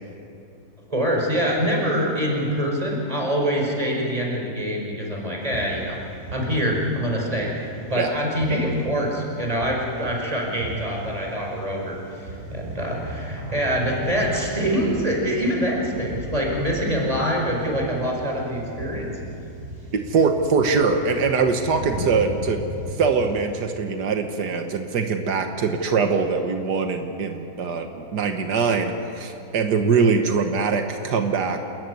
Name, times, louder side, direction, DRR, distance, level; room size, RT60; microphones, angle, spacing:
voice 1, 0.9-6.0 6.3-19.1 22.0-22.1, equal, 20° right, -1 dB, 5.0 m, -25 dB
sound 1, 5.4-23.4, equal, 65° right, 5.3 m, -37 dB
voice 2, 19.9-22.6 23.0-31.7, right 5 dB, 90° right, 5 dB, 1.9 m, -22 dB
28.5 x 14.5 x 9.5 m, 2.8 s
omnidirectional pair, 1.7 m